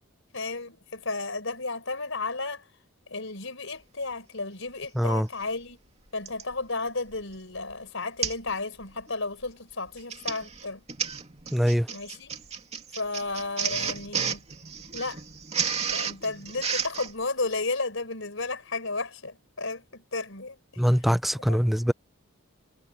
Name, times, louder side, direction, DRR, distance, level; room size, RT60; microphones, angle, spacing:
voice 1, 0.3-2.7 3.1-5.8 6.1-10.8 11.9-12.3 13.0-14.4 14.9-15.2 15.9-20.6 21.5-21.6, left 3 dB, 65° left, 4.8 m, -33 dB
voice 2, 5.0-5.3 11.5-11.9 20.8-21.9, equal, ahead, 0.5 m, -23 dB
Printer, 6.3-6.5 7.1-7.3 7.6-7.7 8.2-8.5 8.8-9.1 9.9-17.1, right 7 dB, 30° right, 2.7 m, -32 dB
head